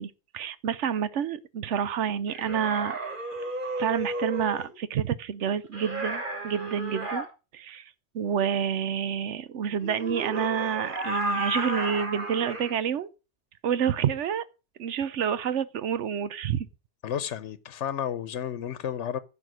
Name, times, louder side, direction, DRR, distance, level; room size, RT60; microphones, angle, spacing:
voice 1, 0.0-3.0 3.8-7.3 7.5-13.1 13.6-14.4 14.8-16.7, right 8 dB, 90° right, 1.1 m, -28 dB
sound 1, 2.3-4.7 5.7-7.3 9.8-12.7, right 1 dB, 45° right, 2.2 m, -33 dB
voice 2, 17.0-19.2, left 9 dB, 85° left, 1.1 m, -32 dB
15.0 x 5.8 x 6.3 m
omnidirectional pair, 1.2 m